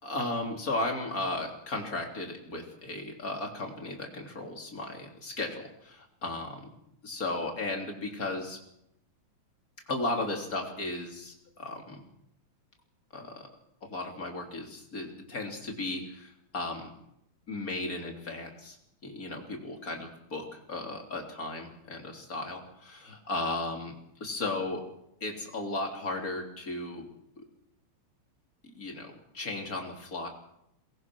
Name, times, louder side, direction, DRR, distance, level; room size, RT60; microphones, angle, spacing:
voice 1, 0.0-6.5 7.0-8.6 9.9-12.0 13.1-13.5 13.8-16.9 17.5-18.8 19.0-24.8 25.2-27.1 28.8-30.3, left 2 dB, 30° left, 2 dB, 3.5 m, -35 dB
22.5 x 20.0 x 6.1 m, 0.79 s
omnidirectional pair, 3.4 m